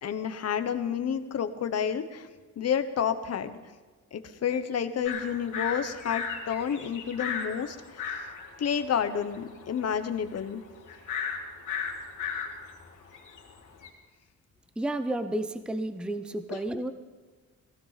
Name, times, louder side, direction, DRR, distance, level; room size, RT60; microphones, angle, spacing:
voice 1, 0.0-2.3 2.6-3.6 4.1-8.0 8.6-10.6 16.5-16.6, left 7 dB, 55° left, 9 dB, 1.0 m, -30 dB
sound 1, 5.0-13.9, left 6 dB, 80° left, 3.5 m, -36 dB
voice 2, 14.8-16.9, right 1 dB, 5° right, 10 dB, 0.5 m, -31 dB
18.0 x 16.5 x 4.1 m, 1.4 s
wide cardioid pair, 165°, 31 cm